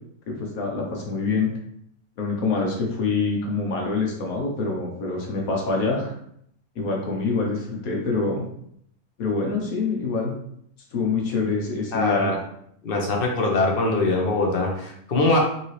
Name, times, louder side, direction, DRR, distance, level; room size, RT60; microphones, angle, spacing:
voice 1, 0.3-1.5 2.2-6.1 6.8-8.4 9.2-10.3 10.9-12.4, left 4 dB, 85° left, -1 dB, 1.4 m, -25 dB
voice 2, 11.9-12.4 12.8-15.4, left 2 dB, 45° left, 0 dB, 1.1 m, -22 dB
5.3 x 2.9 x 3.2 m, 0.70 s
omnidirectional pair, 1.4 m